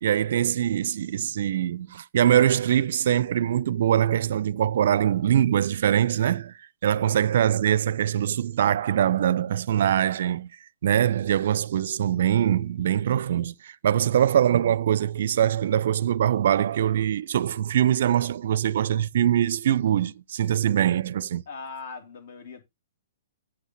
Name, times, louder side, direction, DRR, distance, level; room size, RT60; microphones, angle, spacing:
voice 1, 0.0-6.5 6.8-10.5 10.8-21.4, right 10 dB, 60° right, 0.4 m, -23 dB
voice 2, 21.5-22.6, left 4 dB, 55° left, 2.9 m, -40 dB
8.2 x 7.9 x 4.0 m
figure-of-eight pair, 120°, 0 cm